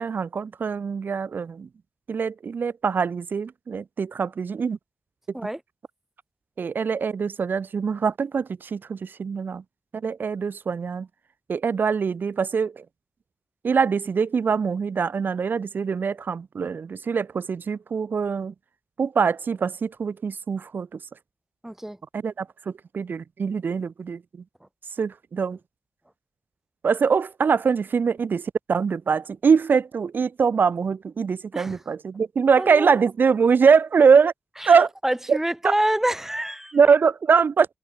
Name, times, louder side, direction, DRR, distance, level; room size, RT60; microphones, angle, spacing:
voice 1, 0.0-1.7 2.1-4.8 6.6-9.6 9.9-11.1 11.5-12.8 13.6-18.5 19.0-21.0 22.1-24.2 25.0-25.6 26.8-34.3 34.7-34.9 35.3-35.4 36.7-37.7, right 6 dB, 65° right, 1.1 m, -23 dB
voice 2, 21.6-22.0 31.5-31.8 32.6-33.0 34.6-36.8, right 1 dB, 10° right, 3.5 m, -27 dB
cardioid pair, 60°, 4 cm